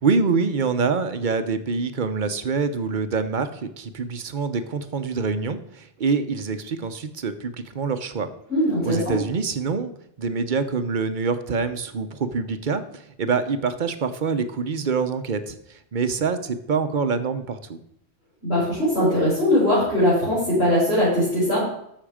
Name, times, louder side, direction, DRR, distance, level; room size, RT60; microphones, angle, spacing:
voice 1, 0.0-8.3 8.8-9.9 10.2-17.8, right 5 dB, 50° right, 10 dB, 0.9 m, -25 dB
voice 2, 8.5-9.1 18.4-21.7, left 1 dB, 65° left, -10 dB, 5.7 m, -20 dB
13.5 x 6.3 x 5.0 m, 0.75 s
omnidirectional pair, 1.1 m